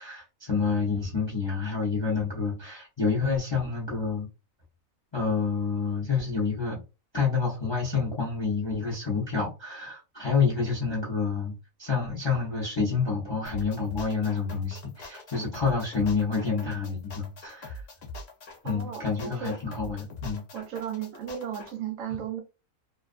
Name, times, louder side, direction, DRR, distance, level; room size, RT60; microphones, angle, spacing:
voice 1, 0.0-4.3 5.1-6.8 7.1-17.8 18.6-20.4, left 5 dB, 30° left, 0.5 m, -28 dB
sound 1, 13.4-21.7, left 2 dB, 55° left, 0.8 m, -43 dB
voice 2, 18.6-19.6 20.5-22.4, right 9 dB, 75° right, 0.9 m, -35 dB
2.4 x 2.4 x 2.4 m
omnidirectional pair, 1.4 m